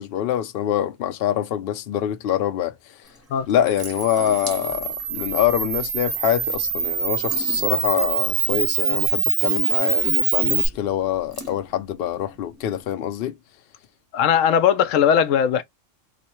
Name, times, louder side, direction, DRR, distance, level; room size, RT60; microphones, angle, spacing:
voice 1, 0.0-2.7 3.5-13.4, left 11 dB, 60° left, 0.7 m, -25 dB
Water tap faucet / Sink (filling or washing) / Drip, 3.0-12.8, right 1 dB, 15° right, 0.9 m, -43 dB
Camera, 3.7-10.7, right 7 dB, 85° right, 1.1 m, -24 dB
voice 2, 14.1-15.6, left 8 dB, 90° left, 1.0 m, -18 dB
3.0 x 2.1 x 4.1 m
omnidirectional pair, 1.3 m